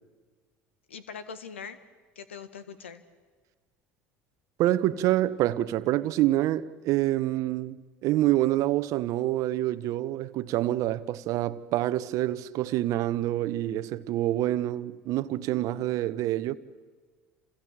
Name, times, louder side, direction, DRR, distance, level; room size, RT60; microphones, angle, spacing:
voice 1, 0.9-1.8 2.2-3.0 15.6-15.9, left 6 dB, 85° left, 1.7 m, -42 dB
voice 2, 4.6-16.6, right 14 dB, 60° right, 1.1 m, -27 dB
28.5 x 27.5 x 7.6 m
hypercardioid pair, 70°, 6 cm